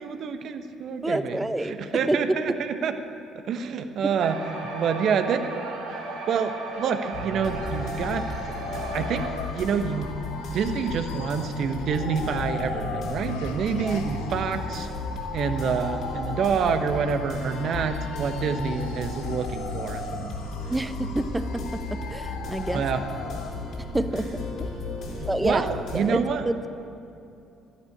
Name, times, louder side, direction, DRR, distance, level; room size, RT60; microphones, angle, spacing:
voice 1, 0.0-2.9 3.5-5.4 6.3-8.5 8.9-9.3 9.6-10.1 10.5-14.9 15.3-20.5 22.7-23.0 25.1-26.4, right 6 dB, 55° right, 8 dB, 1.1 m, -27 dB
voice 2, 1.0-2.2 13.8-14.0 20.7-22.8 23.9-24.3 24.6-24.7 25.3-25.7 25.9-26.7, right 1 dB, 10° right, 11 dB, 0.9 m, -28 dB
sound 1, 4.2-9.3, right 3 dB, 75° right, 2.7 m, -36 dB
sound 2, 7.1-26.0, left 2 dB, 60° left, 3.8 m, -35 dB
sound 3, 7.4-23.5, left 5 dB, 75° left, 1.1 m, -38 dB
13.5 x 11.5 x 8.6 m, 2.6 s
hypercardioid pair, 50°, 0 cm